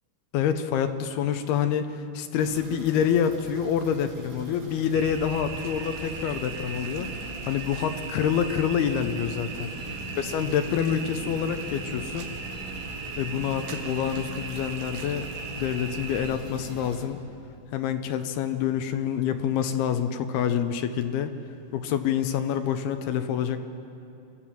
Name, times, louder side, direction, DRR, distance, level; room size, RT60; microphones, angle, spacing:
voice 1, 0.3-1.9 2.1-7.1 7.4-9.7 10.2-12.3 13.2-15.3 15.6-17.2 17.7-21.3 21.7-23.6, left 8 dB, 75° left, 8 dB, 2.5 m, -27 dB
sound 1, 2.4-17.0, right 2 dB, 55° right, 3.5 m, -45 dB
sound 2, 4.9-16.3, right 4 dB, 90° right, 3.8 m, -38 dB
sound 3, 5.0-16.8, left 1 dB, 35° left, 3.0 m, -44 dB
26.5 x 13.5 x 7.6 m, 2.6 s
omnidirectional pair, 5.1 m